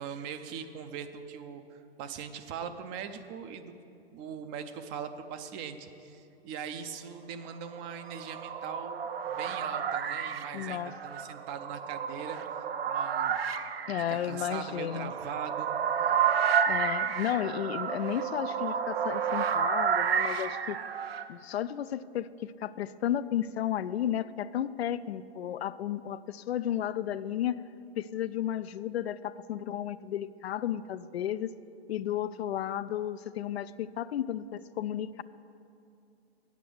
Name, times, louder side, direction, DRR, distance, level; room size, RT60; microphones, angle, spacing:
voice 1, 0.0-3.7 4.1-12.4 12.9-13.4 14.1-15.7, right 7 dB, 25° right, 9 dB, 0.5 m, -41 dB
sound 1, 7.8-21.3, right 7 dB, 65° right, 0.7 m, -31 dB
voice 2, 10.5-10.9 13.9-15.1 16.7-20.8 21.3-27.6 28.0-31.5 31.9-35.2, left 11 dB, 75° left, 15 dB, 0.5 m, -33 dB
8.3 x 8.2 x 7.8 m, 2.6 s
hypercardioid pair, 125°, 31 cm